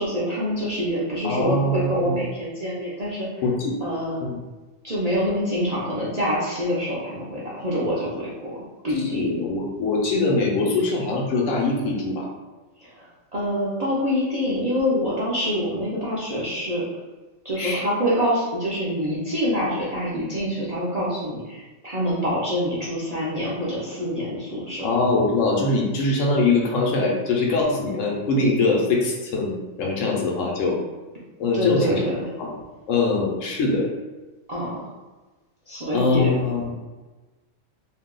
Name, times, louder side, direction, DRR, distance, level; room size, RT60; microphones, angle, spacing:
voice 1, 0.0-3.3 3.8-4.2 4.8-9.3 12.8-16.8 17.4-24.9 31.5-32.3 34.5-34.9 35.7-36.4, equal, 45° right, -7 dB, 0.5 m, -26 dB
voice 2, 1.2-2.1 3.4-3.8 4.2-4.4 9.0-12.3 17.6-17.8 24.8-30.8 31.4-32.0 32.4-32.5 32.9-33.9 35.9-36.7, left 3 dB, 75° left, -1 dB, 1.0 m, -22 dB
2.6 x 2.2 x 3.7 m, 1.2 s
omnidirectional pair, 1.4 m